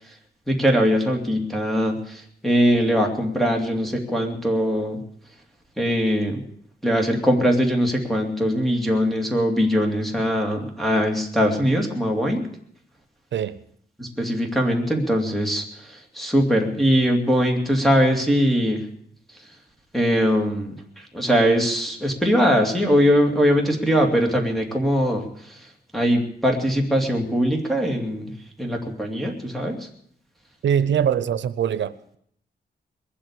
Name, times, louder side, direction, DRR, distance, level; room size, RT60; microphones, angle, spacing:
voice 1, 0.5-5.0 5.8-6.4 6.8-12.4 14.0-18.9 19.9-25.7 25.9-28.3 28.6-29.9, equal, ahead, 2.6 m, -21 dB
voice 2, 13.3-13.6 30.6-32.2, right 8 dB, 85° right, 0.7 m, -23 dB
21.5 x 8.0 x 8.3 m
wide cardioid pair, 140°, 18 cm